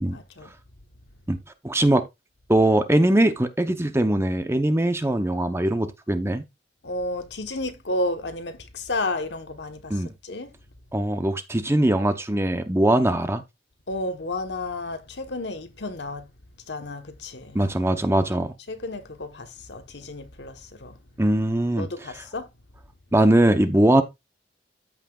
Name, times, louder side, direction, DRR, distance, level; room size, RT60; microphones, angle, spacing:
voice 1, 0.1-0.5 6.8-10.5 13.9-16.3 16.7-17.6 18.7-21.0 21.8-22.5, left 2 dB, 65° left, 1.2 m, -32 dB
voice 2, 1.6-2.0 2.5-6.4 9.9-10.1 10.9-13.4 17.5-18.5 21.2-21.9 23.1-24.0, right 1 dB, 15° right, 0.7 m, -21 dB
14.0 x 5.7 x 2.4 m
head